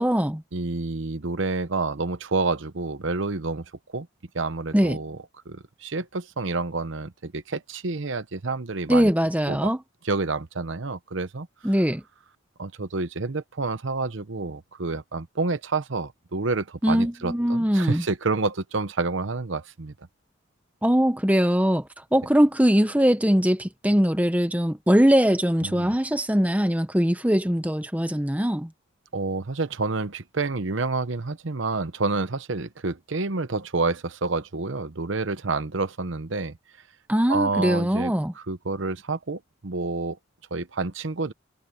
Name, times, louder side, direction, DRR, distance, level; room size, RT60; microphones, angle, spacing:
voice 1, 0.0-0.4 4.7-5.0 8.9-9.8 11.6-12.0 16.8-18.0 20.8-21.8 22.1-28.7 37.1-38.3, equal, 5° right, 1.0 m, -21 dB
voice 2, 0.5-3.6 3.9-4.1 4.3-5.2 5.5-9.1 9.5-9.7 10.0-11.5 12.6-19.9 25.6-25.9 29.1-36.5 37.3-40.2 40.5-41.3, right 3 dB, 65° right, 0.9 m, -28 dB
head